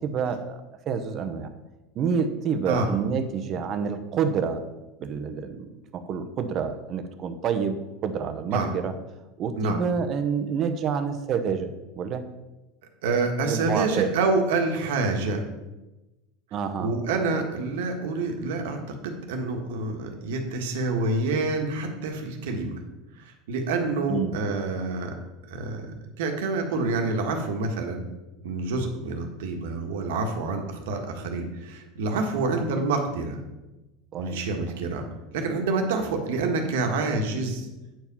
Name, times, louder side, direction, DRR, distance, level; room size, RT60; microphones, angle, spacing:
voice 1, 0.0-1.5 1.9-4.7 5.0-8.9 9.4-12.3 13.5-14.1 16.5-17.1 24.1-24.4 32.5-32.7 34.1-34.4 34.7-34.8, right 6 dB, 35° right, 8 dB, 0.8 m, -28 dB
voice 2, 13.0-15.4 16.8-18.8 19.0-22.8 23.2-25.2 25.5-28.0 28.4-33.4 34.2-35.0 35.3-37.7, right 3 dB, 85° right, 3 dB, 1.6 m, -27 dB
8.9 x 4.9 x 5.5 m, 1.0 s
supercardioid pair, 145°, 0 cm